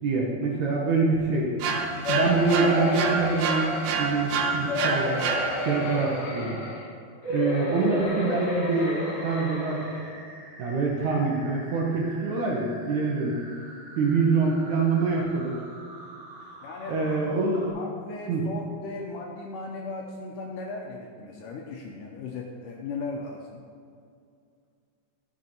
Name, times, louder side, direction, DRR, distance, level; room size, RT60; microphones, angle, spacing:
voice 1, 0.0-1.5 2.1-5.2 5.7-6.6 7.3-9.9 10.6-13.4 14.0-15.6 16.9-17.7 18.3-18.4, right 4 dB, 65° right, -2 dB, 1.9 m, -25 dB
sound 1, 1.6-6.0, right 4 dB, 85° right, 2.6 m, -28 dB
sound 2, 2.0-4.2 4.7-6.8 7.2-10.1 10.7-10.8 11.0-11.1, left 2 dB, 60° left, 3.5 m, -30 dB
sound 3, 8.5-17.7, right 2 dB, 45° right, 2.3 m, -46 dB
voice 2, 16.6-17.0 17.7-23.6, left 3 dB, 75° left, 0 dB, 2.0 m, -37 dB
13.5 x 6.1 x 4.4 m, 2.3 s
omnidirectional pair, 4.3 m